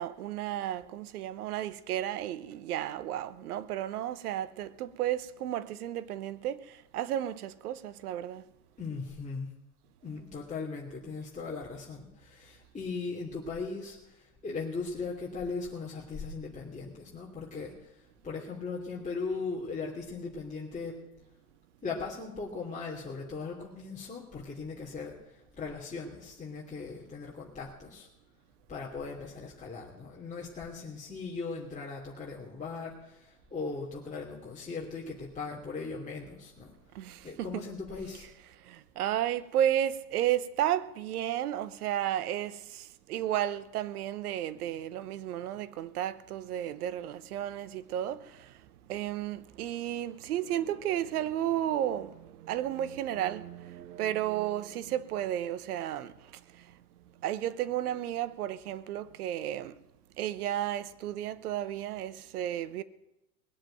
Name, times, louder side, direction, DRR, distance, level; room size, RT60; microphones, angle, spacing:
voice 1, 0.0-6.6 6.9-8.4 36.9-37.2 38.7-48.2 48.9-56.1 57.2-59.7 60.2-62.8, right 11 dB, 75° right, 1.0 m, -33 dB
voice 2, 8.8-9.5 10.0-21.0 21.8-28.1 28.7-36.7 37.2-38.3, left 4 dB, 15° left, 3.0 m, -38 dB
19.5 x 7.6 x 9.1 m
hypercardioid pair, 90°, 45 cm